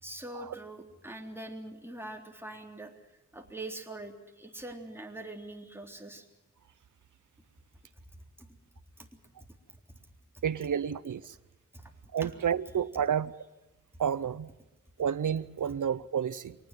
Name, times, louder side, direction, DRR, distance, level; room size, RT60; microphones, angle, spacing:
voice 1, 0.0-2.9 3.3-6.3 8.4-8.5 9.0-9.1 11.7-11.9 12.2-12.3, right 1 dB, 10° right, 3.6 m, -43 dB
voice 2, 10.4-11.3 12.1-13.3 14.0-14.5 15.0-16.5, right 8 dB, 80° right, 0.7 m, -30 dB
24.5 x 19.0 x 7.5 m
wide cardioid pair, 75°, 30 cm